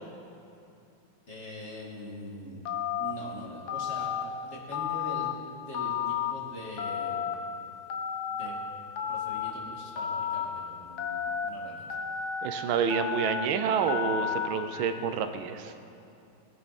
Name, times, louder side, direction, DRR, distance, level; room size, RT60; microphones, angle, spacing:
voice 1, 1.3-2.6 2.9-4.2 4.4-5.3 5.6-7.3 8.3-8.6 9.1-11.9, equal, 35° left, -4 dB, 2.3 m, -43 dB
Telephone, 2.7-3.1 3.7-4.2 4.7-5.3 5.7-6.3 6.8-7.3 7.9-8.5 9.0-9.5 10.0-10.5 11.0-11.5 11.9-12.5 12.9-13.5 13.9-14.5, left 8 dB, 60° left, 1.4 m, -31 dB
voice 2, 12.4-15.7, right 7 dB, 85° right, 9 dB, 1.5 m, -28 dB
20.0 x 9.3 x 4.2 m, 2.6 s
omnidirectional pair, 2.2 m